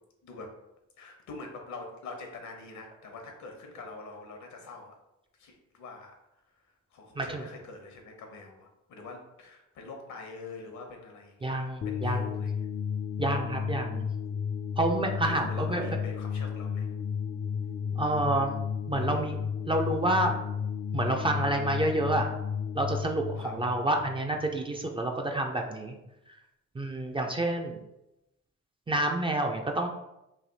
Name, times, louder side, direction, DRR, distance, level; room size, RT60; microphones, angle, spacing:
voice 1, 0.2-0.5 1.0-4.9 5.4-6.1 6.6-11.6 11.8-12.7 14.3-14.4 15.2-16.9 18.9-19.2 23.4-23.6, left 3 dB, 70° left, 2 dB, 1.0 m, -45 dB
voice 2, 11.4-12.3 13.2-14.1 14.8-15.9 17.9-18.5 18.9-19.4 19.7-20.3 20.9-22.3 22.7-26.0 26.7-27.8 28.9-29.9, right 1 dB, 15° right, 2 dB, 0.4 m, -28 dB
sound 1, 11.8-24.9, left 7 dB, 40° left, 0.5 m, -33 dB
3.3 x 2.7 x 3.9 m, 0.89 s
cardioid pair, 90°, 30 cm